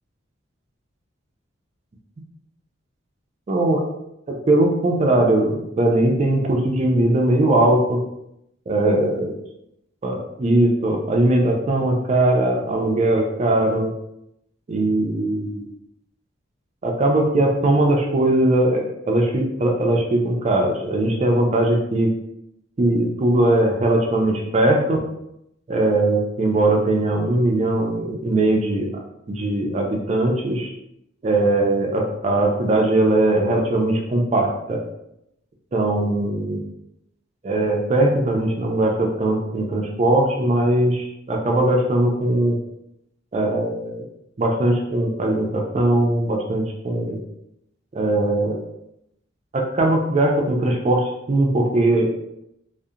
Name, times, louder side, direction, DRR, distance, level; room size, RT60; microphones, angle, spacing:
voice 1, 3.5-3.8 4.3-8.0 8.7-9.3 10.0-13.9 14.7-15.7 16.8-22.1 22.8-25.0 25.7-28.9 29.3-30.7 31.2-34.8 35.7-36.6 37.4-42.6 43.3-44.0 44.4-47.2 47.9-48.6 49.5-52.1, right 1 dB, 30° right, 1 dB, 0.3 m, -20 dB
2.7 x 2.0 x 2.4 m, 0.81 s
head